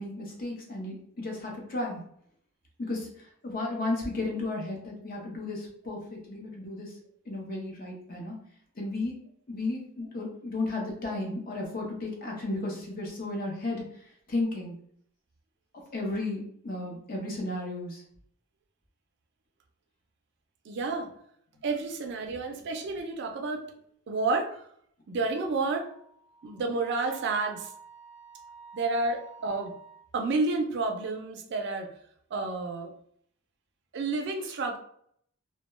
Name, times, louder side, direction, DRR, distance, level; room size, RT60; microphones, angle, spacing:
voice 1, 0.0-2.0 2.8-7.0 7.3-8.4 8.8-9.1 9.5-13.8 14.3-14.7 15.7-18.0, left 2 dB, 40° left, 0 dB, 0.6 m, -34 dB
voice 2, 20.7-21.1 21.6-23.6 24.1-24.6 25.1-25.9 26.4-27.7 28.7-29.7 30.1-31.9 32.3-32.9 33.9-34.8, right 3 dB, 55° right, 3 dB, 0.4 m, -30 dB
Wind instrument woodwind instrument, 25.7-30.1, right 5 dB, 10° right, 0.6 m, -50 dB
2.2 x 2.1 x 3.0 m, 0.66 s
head